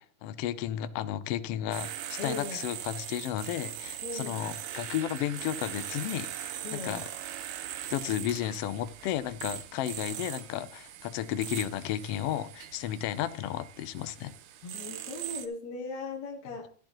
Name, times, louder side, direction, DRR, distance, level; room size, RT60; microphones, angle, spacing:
voice 1, 0.0-7.1 7.9-14.3, left 11 dB, 85° left, 1.3 m, -33 dB
sound 1, 1.7-15.5, right 11 dB, 90° right, 2.4 m, -40 dB
voice 2, 2.2-2.6 4.0-4.5 6.6-7.1 14.6-16.7, left 3 dB, 65° left, 2.6 m, -38 dB
13.0 x 10.5 x 3.0 m
omnidirectional pair, 3.6 m